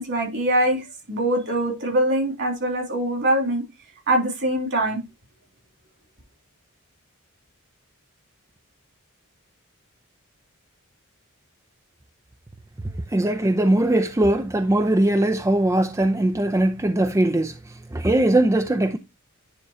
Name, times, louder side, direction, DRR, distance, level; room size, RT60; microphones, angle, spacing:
voice 1, 0.0-3.6 4.1-5.0, right 1 dB, 55° right, 3.1 m, -23 dB
voice 2, 13.1-19.0, right 1 dB, 15° right, 0.5 m, -20 dB
9.7 x 3.7 x 4.3 m
head